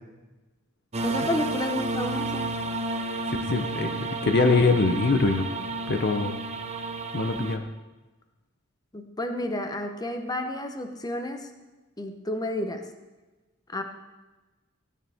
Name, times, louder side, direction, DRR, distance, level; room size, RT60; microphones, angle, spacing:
sound 1, 0.9-7.6, right 3 dB, 30° right, 0.8 m, -31 dB
voice 1, 1.0-2.5 8.9-11.5 12.0-12.8 13.7-13.8, left 1 dB, 20° left, 6 dB, 0.9 m, -31 dB
voice 2, 3.4-5.5 5.9-6.4 7.1-7.7, left 3 dB, 50° left, 6 dB, 0.6 m, -23 dB
15.0 x 9.7 x 3.5 m, 1.2 s
head